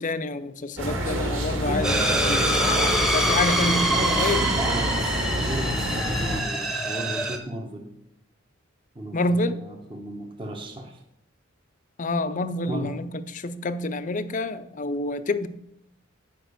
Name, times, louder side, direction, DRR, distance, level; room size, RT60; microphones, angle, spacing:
voice 1, 0.0-2.5 3.0-4.5 9.1-9.6 12.0-15.5, left 2 dB, 40° left, 0.5 m, -28 dB
sound 1, 0.8-6.4, right 1 dB, 75° right, 2.0 m, -27 dB
sound 2, 1.8-7.4, equal, ahead, 1.0 m, -25 dB
voice 2, 3.6-4.3 4.5-7.9 8.9-11.0 12.7-13.0, equal, 25° right, 1.0 m, -35 dB
10.0 x 5.4 x 6.6 m
head